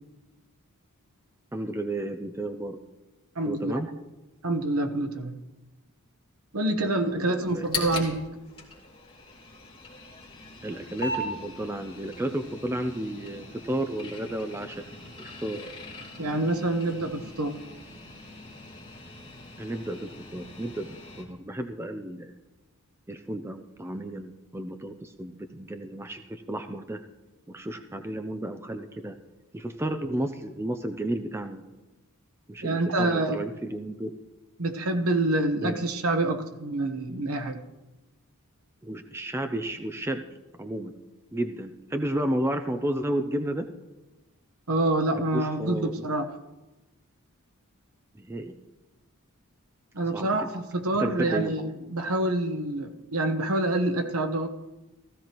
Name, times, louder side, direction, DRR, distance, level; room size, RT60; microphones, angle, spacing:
voice 1, 1.5-2.8 3.5-3.9 6.8-7.7 10.6-14.8 15.2-15.7 19.6-22.3 23.1-27.0 27.5-29.2 29.5-31.6 32.5-34.2 35.6-35.8 38.8-40.2 40.6-40.9 41.3-43.7 45.3-46.1 48.2-48.6 50.1-50.5 51.0-51.6, right 1 dB, 10° right, 6 dB, 0.4 m, -32 dB
voice 2, 3.3-3.8 4.4-5.4 6.5-8.2 16.2-17.6 32.6-33.4 34.6-37.6 44.7-46.3 49.9-54.5, right 2 dB, 70° right, 7 dB, 1.1 m, -27 dB
sound 1, 7.4-21.2, left 2 dB, 25° left, 2.7 m, -40 dB
16.0 x 14.5 x 3.0 m, 1.1 s
head